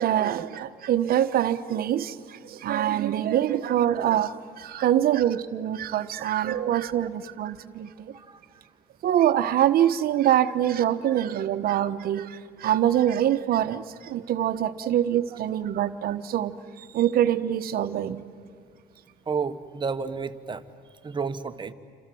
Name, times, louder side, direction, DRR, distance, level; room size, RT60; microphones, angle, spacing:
voice 1, 0.0-7.9 9.0-18.2, right 11 dB, 60° right, 1.1 m, -24 dB
voice 2, 19.3-20.7 21.0-21.7, right 5 dB, 30° right, 1.3 m, -31 dB
28.5 x 26.0 x 7.7 m
cardioid pair, 110°, 17 cm